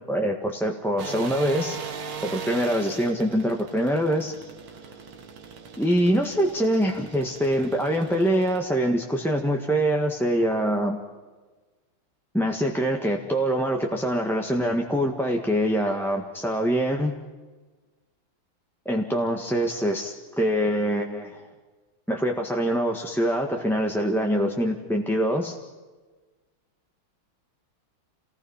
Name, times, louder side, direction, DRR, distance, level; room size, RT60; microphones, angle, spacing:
voice 1, 0.1-1.8 2.3-4.3 5.8-11.0 12.3-17.1 18.8-21.4 22.1-25.6, equal, ahead, 1 dB, 1.3 m, -24 dB
sound 1, 1.0-8.6, right 6 dB, 85° right, 2.5 m, -39 dB
29.0 x 19.0 x 5.7 m, 1.3 s
omnidirectional pair, 2.3 m